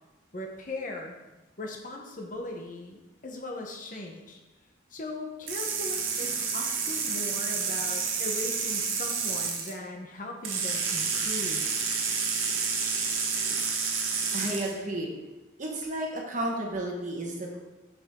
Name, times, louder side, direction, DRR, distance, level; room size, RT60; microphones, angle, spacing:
voice 1, 0.3-1.2 1.6-4.4 4.9-11.7, left 2 dB, 40° left, 1 dB, 0.9 m, -39 dB
sound 1, 5.5-9.7 10.4-14.7, right 5 dB, 85° right, 1.2 m, -29 dB
voice 2, 14.3-15.1 15.6-17.6, right 1 dB, 40° right, 0 dB, 1.3 m, -32 dB
7.0 x 6.1 x 3.7 m, 1.1 s
head